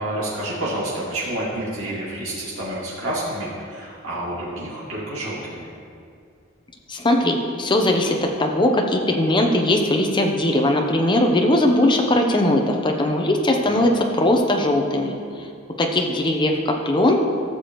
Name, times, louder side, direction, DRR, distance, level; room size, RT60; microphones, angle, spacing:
voice 1, 0.0-5.7, right 1 dB, 85° right, -8 dB, 2.5 m, -29 dB
voice 2, 6.9-15.1 15.8-17.2, left 1 dB, 25° left, 2 dB, 0.8 m, -19 dB
14.5 x 6.9 x 3.1 m, 2.3 s
head